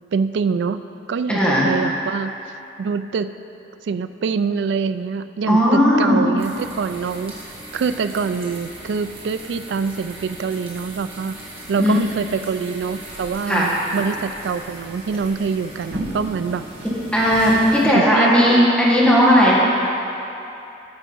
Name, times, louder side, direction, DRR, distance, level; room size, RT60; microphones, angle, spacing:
voice 1, 0.1-0.8 1.1-2.3 2.8-3.3 3.8-11.4 11.7-16.7 17.8-18.7, right 5 dB, 75° right, 12 dB, 0.3 m, -25 dB
voice 2, 1.3-1.7 5.5-6.1 11.8-11.9 13.5-13.7 15.9-16.0 17.1-19.5, equal, 5° left, -6 dB, 1.6 m, -16 dB
sound 1, 6.4-17.9, right 1 dB, 35° right, 1.8 m, -37 dB
8.9 x 6.0 x 5.5 m, 2.8 s
head